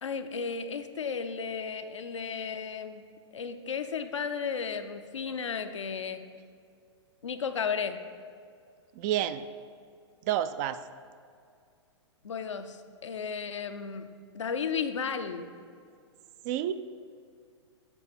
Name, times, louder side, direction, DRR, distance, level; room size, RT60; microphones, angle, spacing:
voice 1, 0.0-3.0 3.3-6.2 7.2-8.0 12.2-15.5, left 6 dB, 75° left, 8 dB, 0.6 m, -34 dB
voice 2, 9.0-9.4 10.3-10.8 16.4-16.7, right 11 dB, 35° right, 12 dB, 0.3 m, -29 dB
8.3 x 4.1 x 6.7 m, 2.2 s
figure-of-eight pair, 110°, 15 cm